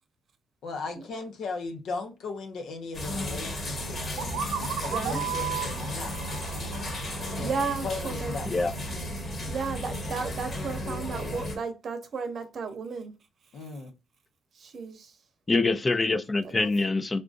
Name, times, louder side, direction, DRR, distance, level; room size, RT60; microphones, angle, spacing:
voice 1, 0.6-6.1 7.3-7.5 7.8-8.5 13.5-13.9, left 3 dB, 75° left, 0.7 m, -37 dB
sound 1, 2.9-11.6, equal, 50° left, 1.3 m, -34 dB
sound 2, 4.2-7.9, right 9 dB, 90° right, 0.6 m, -35 dB
voice 2, 4.9-5.2 7.2-8.3 9.5-13.1 13.5-13.6 14.5-15.2 16.4-16.7, right 4 dB, 55° right, 0.7 m, -34 dB
voice 3, 15.5-17.2, left 3 dB, 25° left, 0.5 m, -25 dB
3.5 x 2.5 x 2.5 m
cardioid pair, 90°, 0 cm